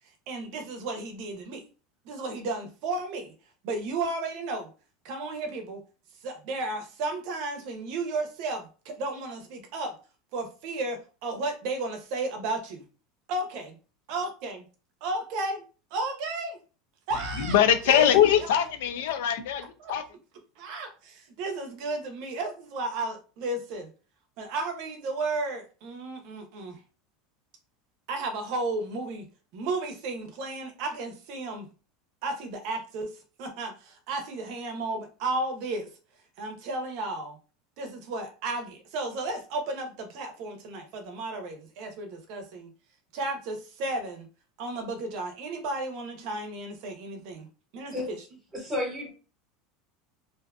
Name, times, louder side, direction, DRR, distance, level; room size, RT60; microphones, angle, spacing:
voice 1, 0.3-1.6 2.0-3.3 3.6-4.7 5.0-5.8 6.2-9.9 10.3-12.8 13.3-13.8 14.1-14.6 15.0-15.6 15.9-16.6 17.1-17.6 17.9-18.1 18.4-18.5 19.8-19.9 20.6-23.9 24.4-26.8 28.1-29.3 29.5-31.7 32.2-33.1 33.4-35.9 36.4-37.4 37.8-42.7 43.1-44.3 44.6-47.5 47.7-48.2, right 2 dB, 50° right, 5 dB, 0.6 m, -33 dB
voice 2, 17.4-20.0, left 10 dB, 75° left, 9 dB, 0.4 m, -22 dB
voice 3, 48.5-49.1, left 2 dB, 15° right, -2 dB, 1.2 m, -31 dB
2.5 x 2.4 x 2.3 m, 0.35 s
supercardioid pair, 165°, 0 cm